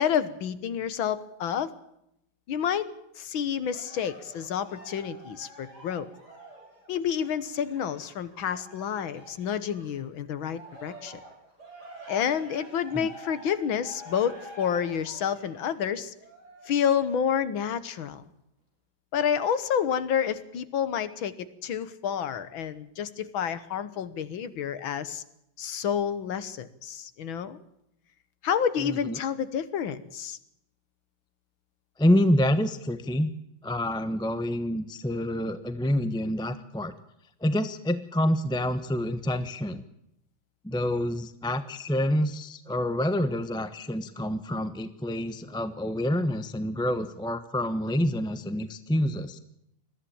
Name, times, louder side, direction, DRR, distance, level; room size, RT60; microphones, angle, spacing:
voice 1, 0.0-1.7 2.5-2.9 3.2-6.1 6.9-11.2 12.1-16.1 16.7-18.2 19.1-25.2 25.6-27.6 28.4-30.4, left 8 dB, 85° left, 14 dB, 2.0 m, -29 dB
Cheering, 3.7-10.0 10.4-17.0 17.6-17.7, right 1 dB, 55° right, 7.1 m, -48 dB
voice 2, 28.8-29.2 32.0-33.3 33.6-36.9 37.4-39.8 40.6-49.4, left 1 dB, 5° left, 11 dB, 0.5 m, -27 dB
21.5 x 14.5 x 8.8 m, 0.79 s
omnidirectional pair, 2.1 m